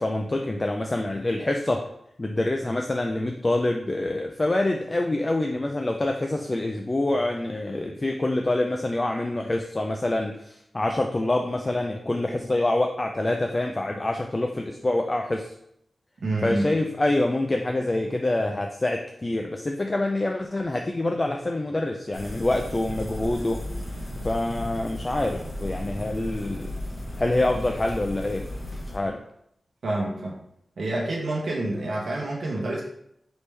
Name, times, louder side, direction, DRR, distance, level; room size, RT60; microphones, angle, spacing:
voice 1, 0.0-1.8 2.2-15.5 16.4-23.6 24.2-26.7 27.2-28.4 28.9-29.2, left 2 dB, 25° left, 3 dB, 0.3 m, -26 dB
voice 2, 16.2-16.7 29.8-30.4 30.8-32.8, right 2 dB, 75° right, -3 dB, 0.8 m, -27 dB
sound 1, 22.1-29.0, left 1 dB, 40° left, 1.2 m, -35 dB
4.4 x 3.4 x 3.2 m, 0.75 s
wide cardioid pair, 145°, 0 cm